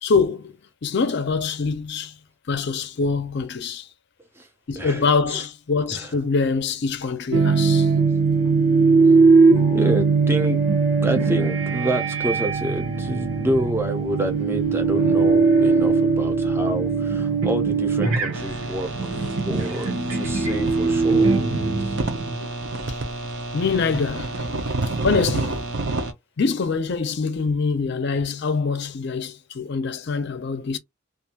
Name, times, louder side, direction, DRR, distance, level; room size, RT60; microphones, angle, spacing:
voice 1, 0.0-0.5 0.8-2.2 2.5-3.9 4.7-7.9 22.9-23.0 23.5-24.7 25.0-25.7 26.4-30.8, left 4 dB, 50° left, 0.5 m, -24 dB
sound 1, 7.3-22.5, right 4 dB, 85° right, 0.9 m, -20 dB
voice 2, 9.7-10.6 11.0-21.3 21.8-22.0, right 1 dB, 10° right, 0.5 m, -28 dB
sound 2, 18.3-26.1, right 2 dB, 55° right, 0.5 m, -29 dB
2.5 x 2.3 x 2.8 m
head